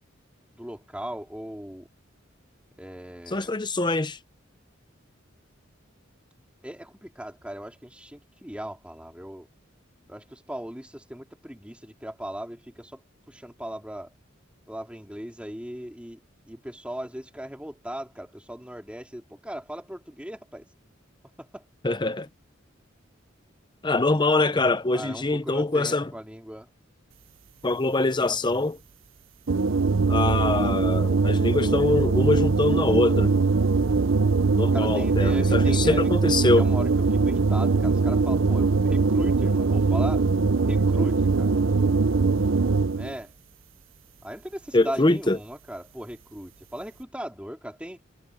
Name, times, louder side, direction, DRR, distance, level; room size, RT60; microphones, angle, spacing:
voice 1, 0.5-1.9 2.8-3.5 6.6-9.5 10.1-13.0 13.3-14.1 14.7-20.7 21.4-21.6 24.9-26.7 34.7-36.1 36.6-36.9 37.2-40.2 40.7-41.6 42.9-43.3 44.2-48.0, equal, 5° right, 4.6 m, -38 dB
voice 2, 3.3-4.2 21.8-22.3 23.8-26.1 27.6-28.8 30.1-33.3 34.6-36.7 44.7-45.4, left 2 dB, 25° left, 0.8 m, -23 dB
sound 1, 29.5-43.1, right 4 dB, 80° right, 0.7 m, -22 dB
head